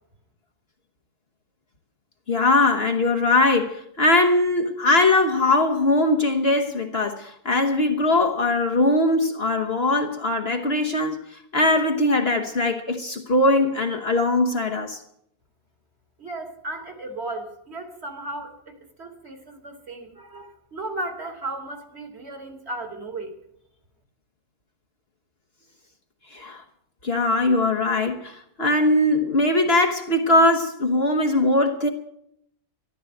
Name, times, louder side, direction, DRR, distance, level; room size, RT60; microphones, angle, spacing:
voice 1, 2.3-15.0 26.3-26.6 27.0-31.9, left 2 dB, 45° left, 1.3 m, -21 dB
voice 2, 16.2-23.3, right 2 dB, 45° right, 2.5 m, -35 dB
14.0 x 12.0 x 7.9 m
omnidirectional pair, 1.6 m